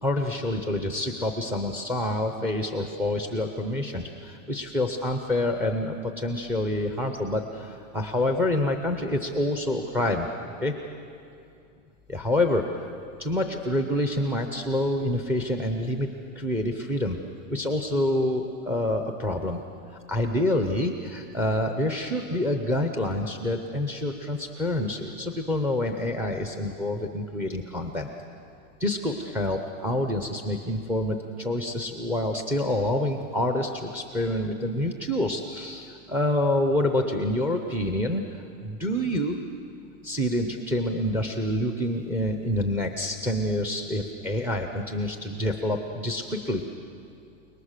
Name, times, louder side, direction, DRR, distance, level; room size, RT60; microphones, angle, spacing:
voice 1, 0.0-10.3 10.6-10.7 12.1-12.9 13.2-16.1 16.3-17.2 17.5-19.6 20.1-28.1 28.8-38.2 38.6-39.4 40.0-46.6, left 1 dB, 5° right, 4 dB, 0.6 m, -27 dB
30.0 x 19.5 x 6.6 m, 2.5 s
supercardioid pair, 160°, 40 cm